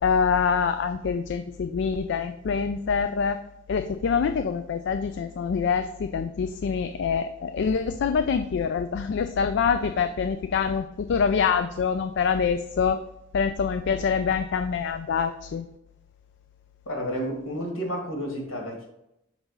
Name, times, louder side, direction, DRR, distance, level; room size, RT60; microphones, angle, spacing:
voice 1, 0.0-3.4 3.7-13.0 13.3-15.7, left 6 dB, 60° left, 8 dB, 0.4 m, -25 dB
voice 2, 16.9-18.9, equal, 85° left, 1 dB, 2.1 m, -31 dB
5.9 x 3.8 x 5.4 m, 0.82 s
head